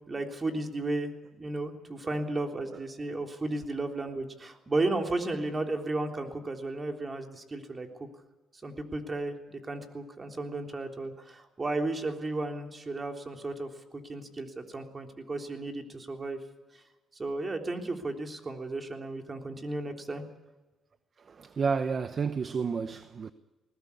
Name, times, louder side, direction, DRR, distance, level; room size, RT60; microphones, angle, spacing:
voice 1, 0.0-8.1 8.6-13.7 14.0-16.4 17.2-20.2, right 2 dB, 30° right, 3.5 m, -34 dB
voice 2, 21.2-23.3, right 5 dB, 45° right, 1.0 m, -31 dB
20.5 x 20.0 x 8.4 m
cardioid pair, 90°, 0 cm